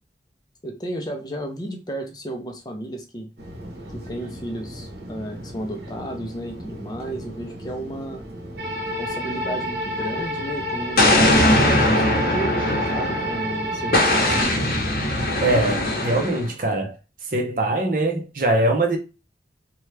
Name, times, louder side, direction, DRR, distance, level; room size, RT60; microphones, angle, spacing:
voice 1, 0.6-3.3 3.9-8.2 9.0-11.1 11.6-14.6, right 1 dB, 20° left, 0.5 m, -33 dB
sound 1, 3.4-14.4, right 1 dB, 70° right, 1.1 m, -37 dB
sound 2, 8.6-14.4, equal, 90° right, 0.8 m, -29 dB
Explosion, 11.0-13.4 13.9-16.5, left 1 dB, 55° left, 0.8 m, -20 dB
voice 2, 15.4-16.9 17.3-19.0, right 2 dB, 50° right, 0.6 m, -22 dB
2.8 x 2.2 x 3.2 m
head